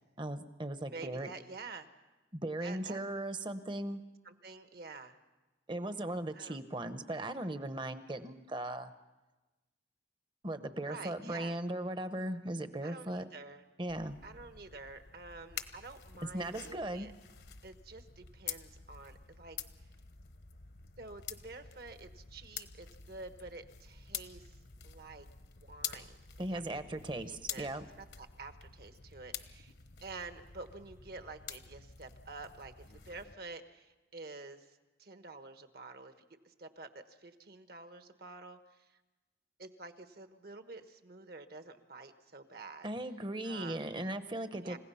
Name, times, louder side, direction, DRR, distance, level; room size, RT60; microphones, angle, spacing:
voice 1, 0.2-1.3 2.3-4.0 5.7-8.9 10.4-13.2 13.8-14.2 16.3-17.1 26.4-27.9 42.8-44.8, right 1 dB, 25° right, 11 dB, 0.9 m, -38 dB
voice 2, 0.9-1.9 2.6-3.0 4.2-5.2 6.3-6.6 10.8-11.6 12.8-13.6 14.2-17.1 17.6-19.6 21.0-24.6 24.8-25.3 25.6-26.2 26.5-26.8 27.2-27.7 28.0-29.7 30.0-34.7 35.0-36.1 36.4-39.0 39.6-42.9 43.4-43.9 44.6-44.8, right 3 dB, 55° right, 9 dB, 1.3 m, -49 dB
sound 1, 13.9-33.3, left 9 dB, 65° left, 1.1 m, -48 dB
30.0 x 16.5 x 5.6 m, 1.1 s
head